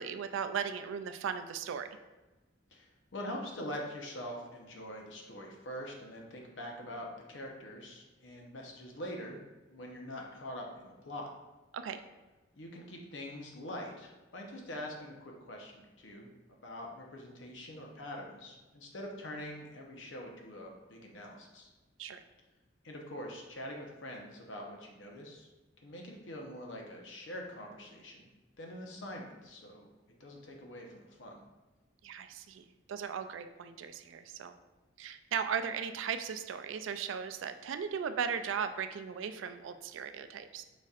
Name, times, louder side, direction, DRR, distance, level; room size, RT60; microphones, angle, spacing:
voice 1, 0.0-1.9 11.7-12.0 22.0-22.2 32.0-34.6 35.0-40.6, right 7 dB, 85° right, 10 dB, 0.3 m, -37 dB
voice 2, 2.7-9.4 9.7-11.3 12.5-16.3 16.6-21.7 22.8-25.5 25.8-28.3 28.6-29.9 30.2-31.4, left 1 dB, 80° left, 1 dB, 0.8 m, -44 dB
5.0 x 4.1 x 2.4 m, 1.2 s
head